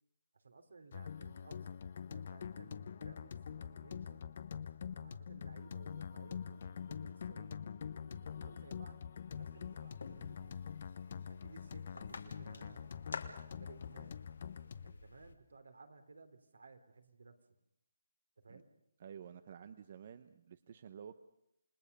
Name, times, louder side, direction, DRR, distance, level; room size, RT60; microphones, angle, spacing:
voice 1, 0.3-1.8 2.1-4.3 4.9-7.6 8.0-10.6 11.3-14.2 14.8-17.4 18.4-18.7, right 3 dB, 80° right, 7 dB, 3.2 m, -58 dB
sound 1, 0.9-14.9, left 7 dB, 50° left, 0.9 m, -45 dB
sound 2, 9.3-15.3, left 4 dB, 75° left, 2.7 m, -51 dB
voice 2, 19.0-21.2, right 8 dB, 40° right, 12 dB, 0.9 m, -51 dB
28.5 x 19.0 x 6.8 m, 0.77 s
hypercardioid pair, 165°, 0 cm